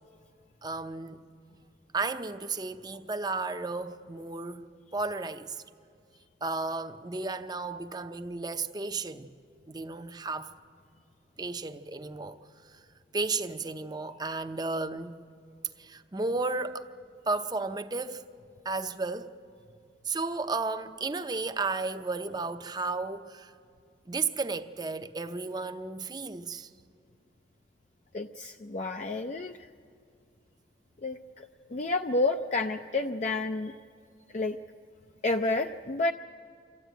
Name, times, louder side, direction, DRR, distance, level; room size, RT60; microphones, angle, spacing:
voice 1, 0.6-1.2 1.9-5.6 6.4-9.3 9.7-10.5 11.4-12.4 13.1-15.2 15.8-16.9 17.3-18.2 18.6-19.3 20.0-23.5 24.1-26.7, right 3 dB, 25° right, 0.6 m, -33 dB
voice 2, 28.1-29.7 31.0-33.7 34.3-34.6 35.2-36.1, left 2 dB, 40° left, 0.5 m, -30 dB
25.5 x 14.5 x 9.2 m
head